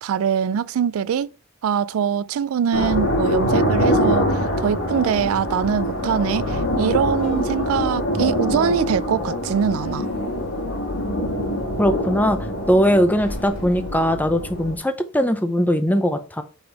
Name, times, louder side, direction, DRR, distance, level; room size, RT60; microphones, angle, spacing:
voice 1, 0.0-1.3 1.6-10.1, right 7 dB, 85° right, 0.3 m, -23 dB
sound 1, 2.7-14.7, left 1 dB, 85° left, 2.3 m, -24 dB
voice 2, 11.8-12.4 12.7-16.4, equal, 10° left, 0.6 m, -20 dB
5.2 x 3.9 x 4.5 m
head